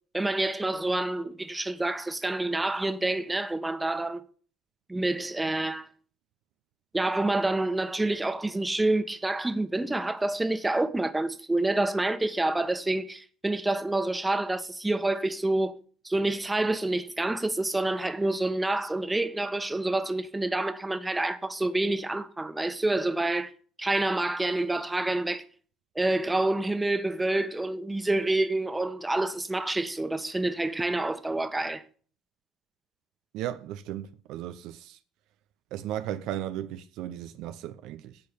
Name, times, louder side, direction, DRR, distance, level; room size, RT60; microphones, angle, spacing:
voice 1, 0.1-4.2 4.9-5.9 6.9-15.8 16.0-23.5 23.8-25.4 25.9-31.8, right 2 dB, 15° right, 1.4 m, -28 dB
voice 2, 33.3-35.0 35.7-38.2, right 12 dB, 65° right, 0.8 m, -36 dB
10.5 x 8.4 x 7.0 m
hypercardioid pair, 60°, 0 cm